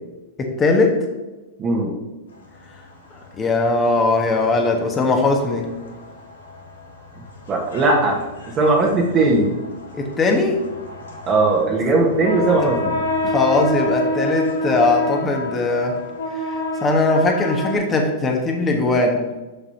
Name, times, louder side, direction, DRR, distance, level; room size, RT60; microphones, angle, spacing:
voice 1, 0.4-1.0 3.4-5.7 9.9-10.6 13.2-16.0 16.3-16.5 16.8-19.2, left 3 dB, 25° left, 2 dB, 1.4 m, -19 dB
voice 2, 1.6-1.9 7.5-8.2 8.6-9.5 11.2-13.3, right 2 dB, 35° right, -2 dB, 1.5 m, -18 dB
sound 1, 2.3-17.8, left 1 dB, 90° left, 1.9 m, -29 dB
6.8 x 4.8 x 5.8 m, 1.1 s
hypercardioid pair, 115°, 0 cm